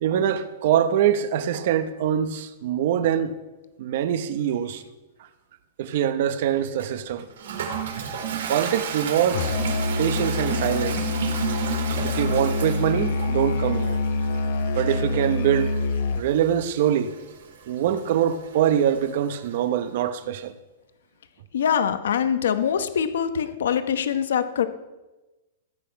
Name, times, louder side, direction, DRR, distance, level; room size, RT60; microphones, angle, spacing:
voice 1, 0.0-3.3 3.8-4.8 5.8-7.3 8.5-9.6 10.0-11.1 12.0-14.0 14.7-15.7 16.2-17.1 17.7-20.5, right 10 dB, 50° right, 0.9 m, -24 dB
Toilet flush, 6.8-19.6, right 8 dB, 75° right, 2.3 m, -34 dB
Musical instrument, 9.3-16.4, left 3 dB, 55° left, 1.0 m, -26 dB
voice 2, 21.5-24.7, left 8 dB, 85° left, 1.1 m, -23 dB
15.0 x 8.7 x 5.8 m
supercardioid pair, 165°, 0 cm